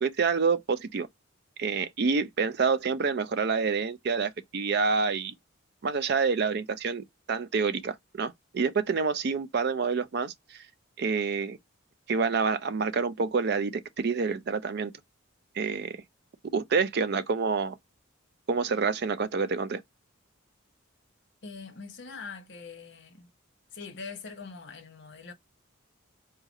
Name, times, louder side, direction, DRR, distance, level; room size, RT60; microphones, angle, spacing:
voice 1, 0.0-1.1 1.6-5.3 5.8-10.6 11.0-11.6 12.1-14.9 15.6-16.0 16.5-17.7 18.5-19.8, right 5 dB, 50° right, 0.4 m, -27 dB
voice 2, 21.4-23.3 23.7-25.3, left 4 dB, 60° left, 1.0 m, -43 dB
3.8 x 2.5 x 3.9 m
head